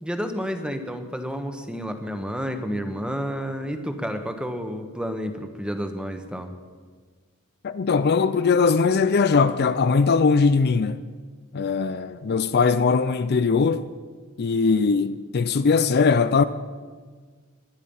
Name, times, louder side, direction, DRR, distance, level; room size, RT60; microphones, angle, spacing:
voice 1, 0.0-6.5, equal, 5° right, 1.2 m, -30 dB
voice 2, 7.6-11.0 11.5-13.9 14.4-16.4, left 5 dB, 50° left, 0.5 m, -20 dB
19.5 x 12.0 x 5.5 m
head